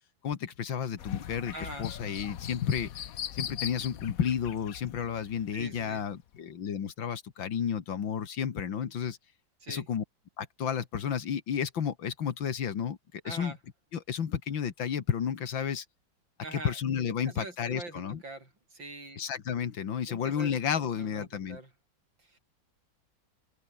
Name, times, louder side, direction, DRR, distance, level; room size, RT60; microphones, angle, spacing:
voice 1, 0.2-2.9 3.3-9.2 9.7-10.0 10.4-13.0 13.2-13.6 13.9-15.9 16.5-18.2 19.2-21.6, left 8 dB, 80° left, 2.5 m, -32 dB
sound 1, 1.0-5.9 6.3-6.4, left 10 dB, 55° left, 1.2 m, -39 dB
voice 2, 1.5-1.9 5.5-6.0 9.6-9.9 13.2-13.6 16.4-16.8 17.2-19.2 20.1-20.5 21.0-21.7 22.2-22.4, right 2 dB, 75° right, 8.3 m, -43 dB
open air
omnidirectional pair, 2.0 m